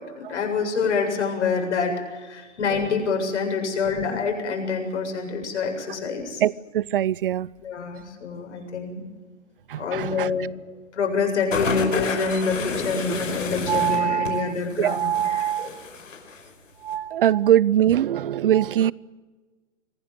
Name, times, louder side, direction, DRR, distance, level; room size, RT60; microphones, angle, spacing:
voice 1, 0.0-6.4 7.6-9.0 9.8-10.5 10.9-15.8, left 5 dB, 65° left, 3 dB, 7.5 m, -26 dB
voice 2, 6.4-7.5 9.7-10.3 13.7-15.8 16.8-18.9, right 11 dB, 45° right, 24 dB, 0.7 m, -22 dB
sound 1, 11.5-16.5 16.9-17.0, left 4 dB, 80° left, 5.1 m, -30 dB
25.5 x 16.5 x 9.1 m, 1.3 s
hypercardioid pair, 145°, 38 cm